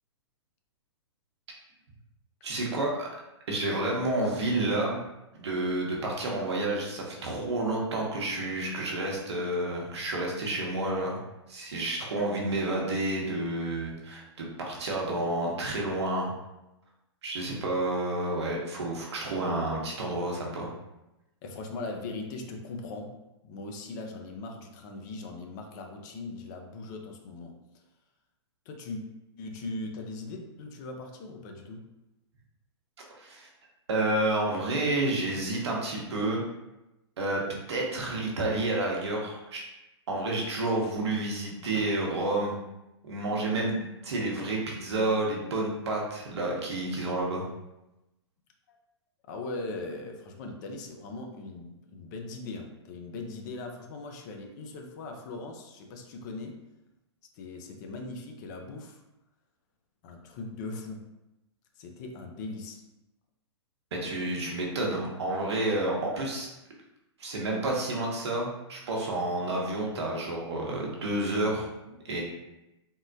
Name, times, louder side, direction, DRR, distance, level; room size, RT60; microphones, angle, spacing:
voice 1, 2.4-3.1 3.5-5.1 5.4-11.2 11.5-16.3 17.2-20.7 33.1-33.5 33.9-36.4 37.2-37.4 37.7-39.6 40.1-42.6 43.0-47.4 63.9-66.5 67.2-71.7 72.0-72.2, right 2 dB, 65° right, -2 dB, 0.9 m, -30 dB
voice 2, 21.4-23.1 23.4-27.6 28.7-29.0 29.4-31.9 48.7-48.8 49.3-56.6 57.4-59.0 60.0-61.1 61.8-62.8, left 3 dB, 40° left, 3 dB, 0.5 m, -39 dB
3.6 x 2.1 x 2.6 m, 0.95 s
figure-of-eight pair, 115°, 15 cm